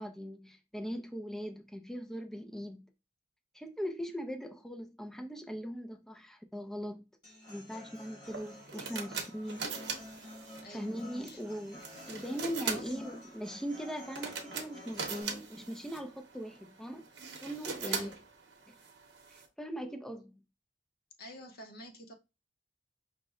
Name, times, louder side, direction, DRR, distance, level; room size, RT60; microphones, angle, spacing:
voice 1, 0.0-2.9 3.5-7.0 7.5-9.7 10.7-17.1 17.4-18.1 18.7-18.8 19.3-20.4, equal, ahead, 0.3 m, -40 dB
Human voice / Acoustic guitar, 7.2-15.2, left 1 dB, 20° left, 2.0 m, -51 dB
sound 1, 8.3-19.5, right 5 dB, 65° right, 0.8 m, -42 dB
voice 2, 10.6-11.4 12.7-12.9 17.8-18.2 21.2-22.1, equal, 50° left, 0.7 m, -49 dB
5.0 x 2.0 x 3.6 m
head